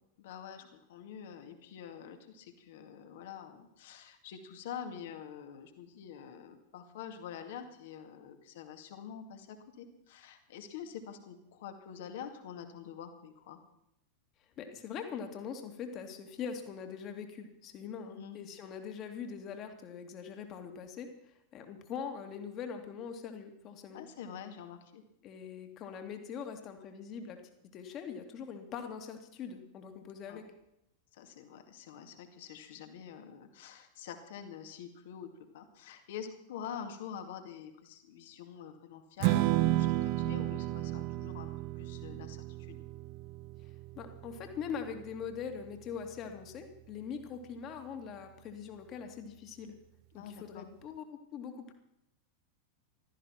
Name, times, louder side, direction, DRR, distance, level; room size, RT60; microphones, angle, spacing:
voice 1, 0.2-13.6 18.1-18.4 23.9-25.0 30.3-30.4 31.1-35.3 35.5-42.8 50.2-50.7, left 8 dB, 55° left, 6 dB, 2.2 m, -46 dB
voice 2, 14.6-21.1 21.5-24.0 25.2-27.4 27.7-30.4 43.9-49.8 50.1-51.7, left 7 dB, 35° left, 5 dB, 2.4 m, -42 dB
Strum, 39.2-45.5, right 16 dB, 45° right, 0.6 m, -33 dB
16.5 x 13.5 x 5.9 m, 0.83 s
figure-of-eight pair, 90°, 0 cm